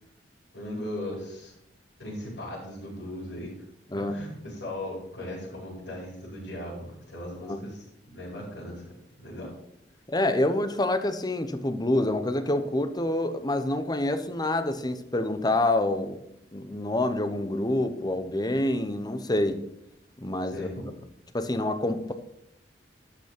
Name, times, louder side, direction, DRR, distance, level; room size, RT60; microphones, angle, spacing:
voice 1, 0.5-1.5 2.0-3.5 3.9-8.8 9.2-9.5 20.5-20.9, left 1 dB, 70° left, 5.3 m, -38 dB
voice 2, 10.1-16.2 16.5-19.7 20.2-20.7 21.3-22.1, left 1 dB, 25° left, 0.9 m, -27 dB
12.0 x 6.1 x 6.0 m
head